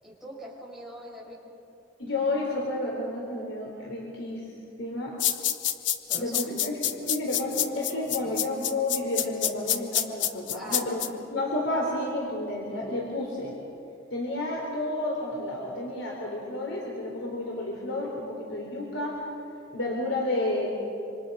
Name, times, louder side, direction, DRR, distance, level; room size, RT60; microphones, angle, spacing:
voice 1, 0.0-1.4 6.0-7.1 8.2-8.5 10.5-11.0, equal, ahead, -5 dB, 6.2 m, -42 dB
voice 2, 2.0-4.4 4.8-5.2 6.1-6.7 7.1-11.0 11.3-13.6 14.1-19.2 19.7-20.7, left 2 dB, 85° left, -2 dB, 3.7 m, -31 dB
sound 1, 5.2-11.1, left 11 dB, 65° left, 1.0 m, -27 dB
26.5 x 26.0 x 5.5 m, 2.8 s
head